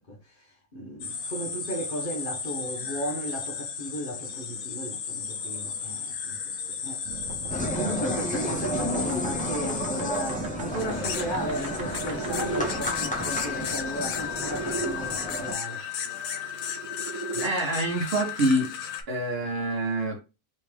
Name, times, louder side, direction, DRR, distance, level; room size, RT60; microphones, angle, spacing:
voice 1, 0.0-7.0 7.7-15.8, right 1 dB, 45° left, 1.0 m, -35 dB
sound 1, 1.0-19.0, left 7 dB, 85° left, 1.1 m, -34 dB
sound 2, 7.0-14.9 16.2-17.5, right 3 dB, 70° right, 1.3 m, -38 dB
sound 3, 7.5-15.6, equal, 5° left, 0.7 m, -32 dB
voice 2, 17.3-18.7 19.1-20.2, right 1 dB, 50° right, 1.1 m, -26 dB
3.3 x 2.9 x 3.3 m
omnidirectional pair, 1.4 m